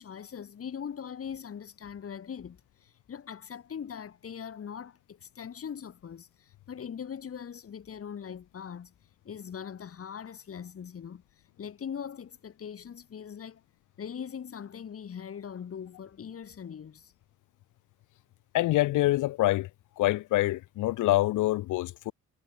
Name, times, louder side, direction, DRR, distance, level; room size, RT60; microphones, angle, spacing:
voice 1, 0.0-8.9 9.2-11.2 11.6-13.6 14.0-17.1, left 7 dB, 50° left, 3.4 m, -41 dB
voice 2, 18.5-19.7 20.0-22.1, left 17 dB, 85° left, 1.2 m, -25 dB
cardioid pair, 90°, 30 cm